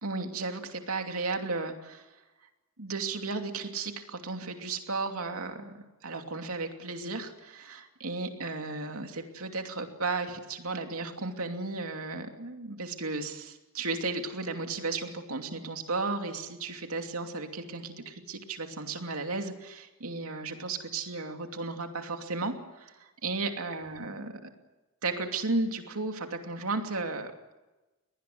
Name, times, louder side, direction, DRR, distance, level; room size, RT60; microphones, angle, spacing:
voice 1, 0.0-2.1 2.8-5.8 6.0-24.5 25.0-27.3, right 3 dB, 85° right, 5 dB, 2.8 m, -34 dB
22.5 x 19.0 x 7.9 m, 1.1 s
head